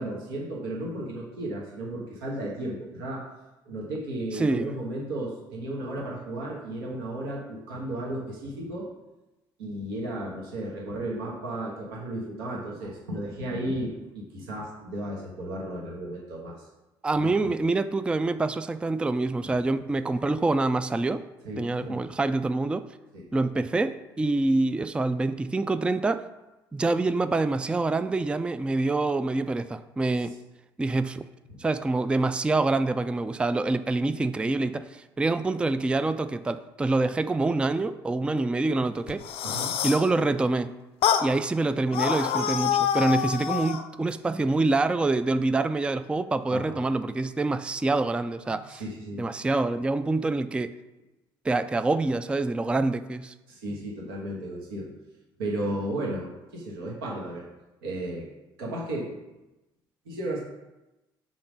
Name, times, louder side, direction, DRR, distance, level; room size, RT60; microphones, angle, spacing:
voice 1, 0.0-3.2 3.6-8.9 9.6-16.7 17.1-17.5 19.4-19.5 21.4-22.0 23.1-23.2 31.5-31.6 39.4-39.7 46.5-46.7 48.7-49.2 53.5-54.9 55.4-57.5 57.8-58.3 58.6-59.1 60.0-60.4, right 1 dB, 75° right, -3 dB, 1.3 m, -34 dB
voice 2, 4.3-4.7 17.0-21.2 21.6-22.9 23.3-26.2 26.7-30.4 30.8-31.2 31.6-39.3 39.8-40.7 41.2-48.8 49.2-50.7 51.4-53.3, right 2 dB, 10° right, 12 dB, 0.3 m, -26 dB
sound 1, 39.1-40.1 41.0-41.3 41.9-43.9, left 9 dB, 50° left, 0.5 m, -26 dB
5.8 x 3.8 x 5.2 m, 1.0 s
figure-of-eight pair, 55°, 12 cm